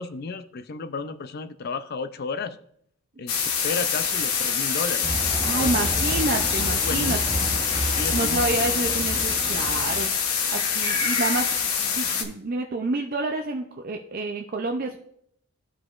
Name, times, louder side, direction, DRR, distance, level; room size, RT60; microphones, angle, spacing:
voice 1, 0.0-2.6 3.2-5.1 5.4-5.9 6.3-6.4 6.7-7.2 7.9-8.7 9.2-9.3, left 4 dB, 45° left, 11 dB, 0.4 m, -33 dB
sound 1, 3.3-12.2, left 6 dB, 75° left, 0.9 m, -25 dB
sound 2, 5.0-10.0, right 1 dB, 25° right, 0.8 m, -31 dB
voice 2, 5.4-7.5 7.9-15.0, right 2 dB, 40° right, 2 dB, 0.4 m, -29 dB
12.5 x 4.8 x 2.4 m, 0.69 s
head